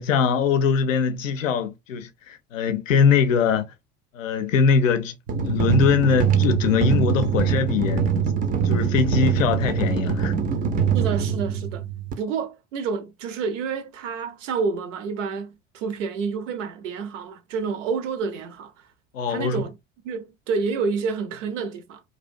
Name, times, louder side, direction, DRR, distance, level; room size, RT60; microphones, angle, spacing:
voice 1, 0.0-3.7 4.1-8.1 8.6-10.3 19.1-19.6, left 6 dB, 80° left, 0.5 m, -22 dB
sound 1, 5.3-12.1, right 7 dB, 25° right, 0.3 m, -23 dB
voice 2, 10.9-11.8 12.2-18.9 19.3-19.8 20.0-22.0, right 5 dB, 70° right, 0.6 m, -29 dB
2.4 x 2.2 x 2.4 m
figure-of-eight pair, 65°, 39 cm